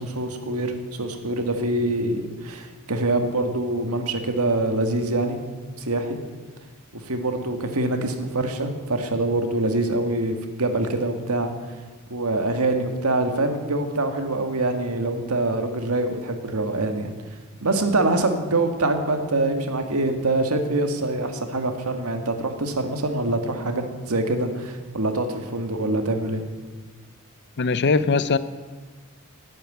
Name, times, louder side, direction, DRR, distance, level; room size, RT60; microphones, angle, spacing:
voice 1, 0.0-5.4 5.8-6.2 6.9-11.5 12.1-17.1 17.6-26.4, right 2 dB, 90° right, 6 dB, 1.8 m, -25 dB
voice 2, 27.6-28.4, left 4 dB, 55° left, 15 dB, 0.7 m, -20 dB
12.0 x 9.5 x 9.4 m, 1.4 s
head